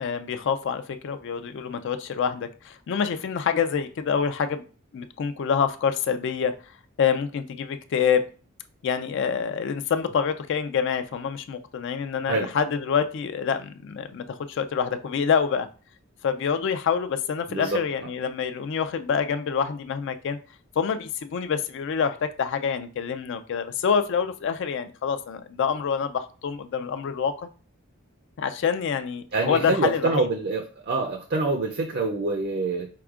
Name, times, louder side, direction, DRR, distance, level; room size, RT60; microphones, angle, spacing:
voice 1, 0.0-4.6 4.9-6.5 7.0-8.2 8.8-15.7 16.2-20.4 20.8-27.5 28.4-30.3, left 6 dB, 55° left, 0.3 m, -26 dB
voice 2, 17.5-17.8 29.3-32.9, right 3 dB, 50° right, 0.5 m, -26 dB
4.7 x 4.3 x 2.4 m
head